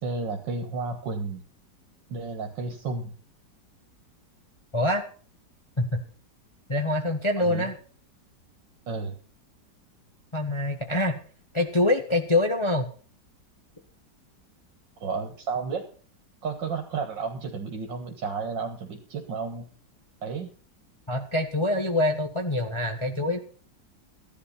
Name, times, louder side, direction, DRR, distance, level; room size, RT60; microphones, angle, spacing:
voice 1, 0.0-1.4 2.1-3.1 7.4-7.7 8.9-9.2 15.0-15.8 16.4-19.7 20.2-20.5, right 4 dB, 85° right, 2 dB, 2.4 m, -32 dB
voice 2, 4.7-5.0 5.8-6.0 6.7-7.8 10.3-11.2 11.5-12.9 21.1-23.4, left 1 dB, 20° left, 4 dB, 1.3 m, -25 dB
15.0 x 11.5 x 4.2 m, 0.42 s
omnidirectional pair, 1.9 m